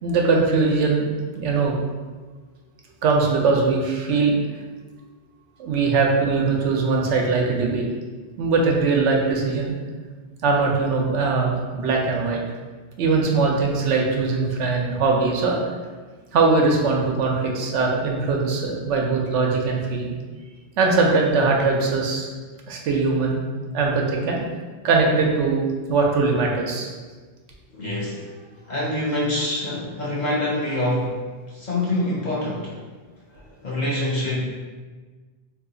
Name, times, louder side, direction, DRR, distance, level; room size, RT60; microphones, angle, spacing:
voice 1, 0.0-1.8 3.0-4.3 5.6-7.8 8.4-9.7 10.4-12.4 13.0-15.6 16.3-20.2 20.8-22.3 22.7-23.4 23.7-24.4 24.8-25.6 25.9-26.9, right 4 dB, 85° right, 0 dB, 0.9 m, -21 dB
voice 2, 27.7-28.3 28.7-31.2 31.5-32.8 33.3-34.4, left 1 dB, 50° left, -5 dB, 0.6 m, -25 dB
2.7 x 2.3 x 3.7 m, 1.4 s
omnidirectional pair, 1.2 m